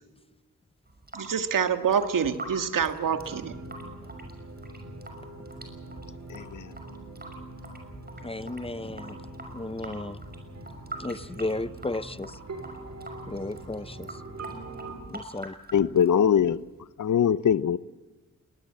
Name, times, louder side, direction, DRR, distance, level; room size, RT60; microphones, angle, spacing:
Water tap faucet / Sink (filling or washing) / Drip, 0.9-16.8, right 2 dB, 30° right, 6.1 m, -44 dB
voice 1, 1.1-3.5, right 7 dB, 80° right, 1.7 m, -26 dB
sound 1, 3.0-14.9, right 2 dB, 55° right, 5.5 m, -43 dB
voice 2, 6.3-6.6 15.7-16.6 17.0-17.8, left 8 dB, 65° left, 0.7 m, -22 dB
voice 3, 8.2-9.2 9.5-10.2 11.0-12.4 13.3-14.1 15.1-15.5, left 2 dB, 15° left, 0.8 m, -34 dB
21.0 x 20.0 x 7.7 m
cardioid pair, 65°, 32 cm